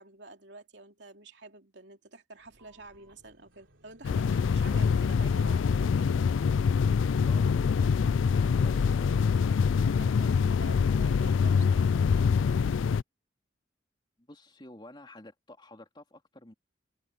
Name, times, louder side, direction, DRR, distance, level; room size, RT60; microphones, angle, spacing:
voice 1, 0.0-6.2 9.6-12.6, right 2 dB, 65° right, 3.1 m, -49 dB
sound 1, 2.4-9.9, right 1 dB, 85° right, 3.6 m, -59 dB
sound 2, 4.0-13.0, left 6 dB, 85° left, 0.4 m, -25 dB
voice 2, 7.3-9.1 14.3-16.5, left 1 dB, 25° left, 3.2 m, -51 dB
head